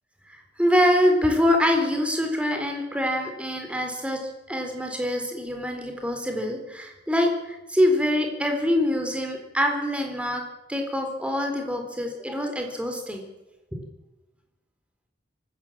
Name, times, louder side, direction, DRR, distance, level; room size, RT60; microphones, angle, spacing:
voice 1, 0.6-4.2 4.5-10.4 10.7-13.2 13.7-13.8, left 1 dB, 5° right, 3 dB, 3.8 m, -24 dB
24.0 x 13.5 x 8.6 m, 1.0 s
head